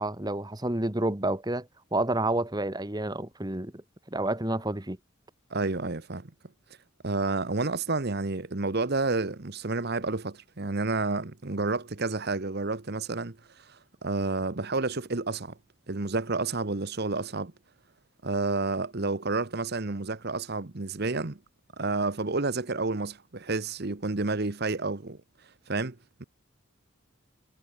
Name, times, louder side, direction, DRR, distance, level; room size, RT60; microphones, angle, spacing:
voice 1, 0.0-1.7 1.9-3.7 4.1-5.0, right 1 dB, 20° right, 1.4 m, -29 dB
voice 2, 5.5-6.3 7.0-15.5 15.9-17.5 18.2-21.4 21.8-25.2 25.7-26.2, right 3 dB, 50° right, 1.1 m, -30 dB
head